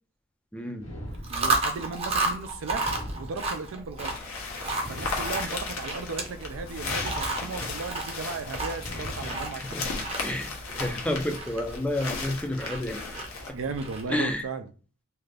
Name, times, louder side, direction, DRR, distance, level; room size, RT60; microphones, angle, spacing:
voice 1, 0.5-0.9 9.2-9.9 10.2-10.5 10.8-13.1 13.5-13.6 14.1-14.5, left 1 dB, 5° left, 0.4 m, -30 dB
sound 1, 0.8-1.8 2.7-3.8 4.7-5.8 6.8-7.8 8.7-9.8, equal, 65° left, 1.1 m, -40 dB
Chewing mastication, 1.1-14.3, right 3 dB, 30° right, 0.7 m, -33 dB
voice 2, 1.3-4.2 4.9-10.1 13.5-14.7, right 4 dB, 70° right, 0.4 m, -36 dB
sound 2, 4.0-13.5, left 4 dB, 85° left, 0.8 m, -36 dB
2.6 x 2.4 x 3.3 m
head